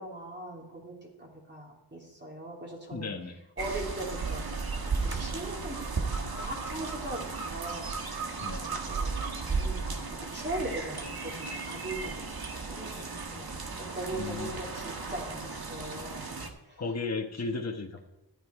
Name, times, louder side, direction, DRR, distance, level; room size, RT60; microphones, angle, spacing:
voice 1, 0.0-3.1 3.6-4.4 4.8-7.8 8.6-13.5 13.8-16.3 16.6-16.8, right 1 dB, 25° right, -2 dB, 3.4 m, -40 dB
voice 2, 2.9-3.4 8.4-8.6 14.1-14.5 16.8-18.1, left 3 dB, 40° left, 3 dB, 1.3 m, -35 dB
sound 1, 3.6-16.5, right 4 dB, 60° right, 1.6 m, -35 dB
13.0 x 9.5 x 4.9 m, 0.95 s
wide cardioid pair, 80°, 40 cm